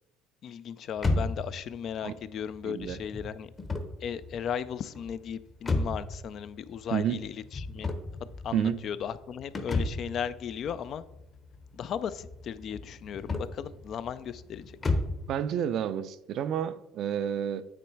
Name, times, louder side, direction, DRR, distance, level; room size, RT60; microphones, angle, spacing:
voice 1, 0.4-3.5 4.0-7.9 8.4-11.0 11.7-14.6, left 8 dB, 55° left, 0.4 m, -36 dB
sound 1, 1.0-15.3, left 2 dB, 25° left, 0.9 m, -35 dB
voice 2, 2.6-3.0 6.9-7.2 8.5-8.8 15.3-17.6, right 9 dB, 60° right, 0.4 m, -30 dB
8.6 x 3.1 x 4.6 m
supercardioid pair, 95°, 0 cm